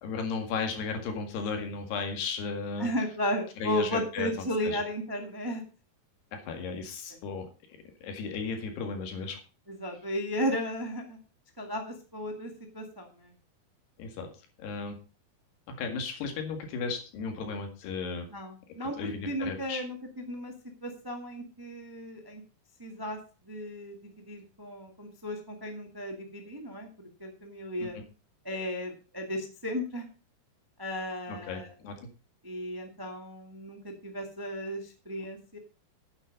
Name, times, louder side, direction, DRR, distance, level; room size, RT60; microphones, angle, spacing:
voice 1, 0.0-2.9 3.6-4.3 4.6-4.8 6.3-7.5 8.0-9.4 14.0-14.3 14.6-15.0 15.7-18.3 19.0-19.8 27.8-27.9 31.3-31.9, left 5 dB, 90° left, 5 dB, 4.0 m, -35 dB
voice 2, 2.8-5.6 6.6-6.7 9.7-11.2 11.6-13.3 18.3-20.5 20.8-22.4 22.8-26.9 27.2-28.0 28.4-30.1 30.8-31.7 32.4-35.6, equal, 35° right, 3 dB, 0.3 m, -35 dB
9.6 x 8.9 x 5.3 m, 0.35 s
omnidirectional pair, 4.6 m